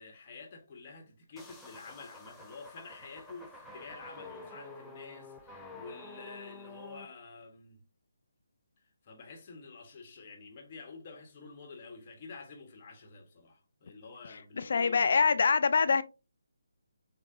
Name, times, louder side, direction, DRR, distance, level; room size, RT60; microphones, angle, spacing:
voice 1, 0.0-7.8 9.0-15.4, left 4 dB, 35° left, 1.2 m, -49 dB
sound 1, 1.4-7.1, left 2 dB, 5° left, 0.6 m, -49 dB
voice 2, 14.6-16.0, left 5 dB, 55° left, 0.4 m, -25 dB
6.5 x 2.3 x 2.6 m
figure-of-eight pair, 150°, 0 cm